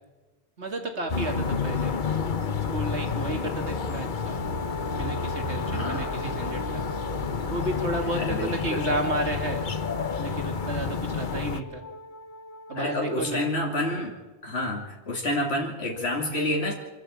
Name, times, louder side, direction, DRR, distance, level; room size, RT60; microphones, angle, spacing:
voice 1, 0.6-1.9 2.7-4.4 4.9-6.8 7.5-9.7 10.2-11.8 12.7-13.4, right 2 dB, 80° right, 4 dB, 2.9 m, -32 dB
sound 1, 1.1-11.6, left 5 dB, 50° left, 1.1 m, -30 dB
Wind instrument woodwind instrument, 4.1-14.1, left 1 dB, 20° left, 0.6 m, -40 dB
voice 2, 5.7-6.1 8.1-8.9 12.7-14.2 14.4-16.7, left 1 dB, 65° left, -1 dB, 2.8 m, -29 dB
26.0 x 13.5 x 8.7 m, 1.2 s
omnidirectional pair, 1.1 m